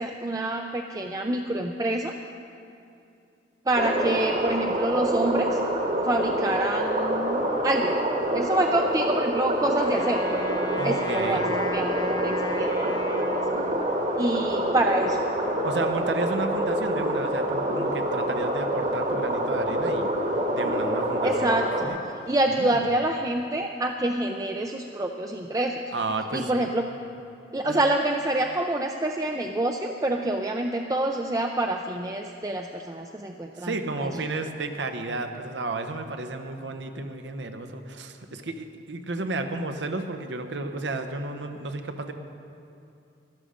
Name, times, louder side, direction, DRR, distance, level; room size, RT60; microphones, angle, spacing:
voice 1, 0.0-2.1 3.7-5.6 6.0-7.9 8.3-10.2 10.8-13.4 14.2-15.2 21.2-25.8 26.3-26.9 27.5-33.7 34.0-34.1, right 1 dB, 20° right, 3 dB, 0.4 m, -27 dB
sound 1, 3.7-21.9, right 1 dB, 45° right, 1.4 m, -26 dB
Wind instrument woodwind instrument, 9.8-14.2, left 2 dB, 25° left, 0.6 m, -36 dB
voice 2, 10.8-11.4 15.6-20.1 20.5-21.5 21.8-22.0 22.6-22.8 25.9-26.7 27.6-27.8 33.6-42.1, right 2 dB, 90° right, 6 dB, 0.9 m, -32 dB
13.0 x 12.0 x 5.1 m, 2.6 s
head